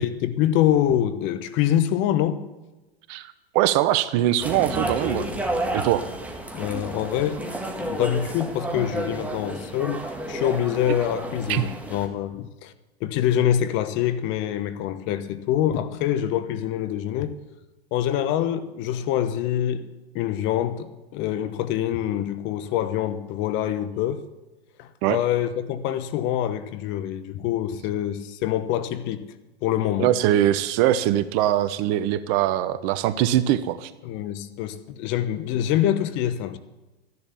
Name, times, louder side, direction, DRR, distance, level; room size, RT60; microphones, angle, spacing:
voice 1, 0.0-2.5 6.5-7.4 7.7-12.7 13.0-17.4 17.9-24.2 24.8-29.3 29.6-30.1 34.0-36.6, left 11 dB, 35° left, 1.0 m, -25 dB
voice 2, 3.1-5.3 5.7-6.1 11.5-11.7 25.0-25.2 30.0-33.9, right 12 dB, 40° right, 0.9 m, -22 dB
sound 1, 4.4-12.1, right 1 dB, 5° right, 1.7 m, -31 dB
14.0 x 11.0 x 7.1 m
hypercardioid pair, 115°, 32 cm